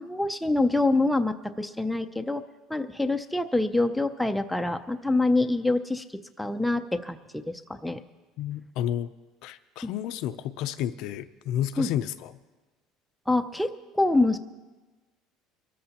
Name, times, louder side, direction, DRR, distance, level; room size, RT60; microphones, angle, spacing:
voice 1, 0.0-2.4 2.7-6.0 6.4-8.0 9.8-9.9 11.8-11.9 13.3-14.4, left 2 dB, ahead, 6 dB, 0.5 m, -26 dB
voice 2, 8.4-9.1 9.4-12.3, left 11 dB, 60° left, 11 dB, 0.5 m, -31 dB
23.5 x 13.5 x 2.9 m, 1.3 s
cardioid pair, 155°, 0 cm